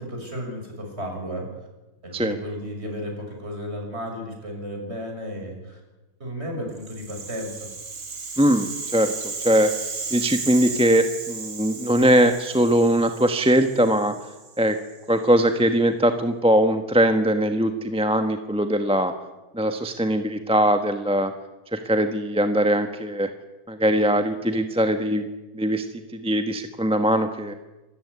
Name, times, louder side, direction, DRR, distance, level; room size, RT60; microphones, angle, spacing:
voice 1, 0.0-1.4 2.0-5.8 6.2-7.7, equal, 45° right, 2 dB, 6.7 m, -33 dB
Rattle (instrument), 6.8-15.0, right 4 dB, 65° right, 2.8 m, -35 dB
voice 2, 8.4-9.7 10.1-14.1 14.6-14.8 15.1-19.1 19.5-21.3 21.7-23.3 23.7-25.2 25.5-25.9 26.1-27.5, equal, 5° right, 7 dB, 1.1 m, -21 dB
26.5 x 14.5 x 9.7 m, 1.1 s
omnidirectional pair, 1.6 m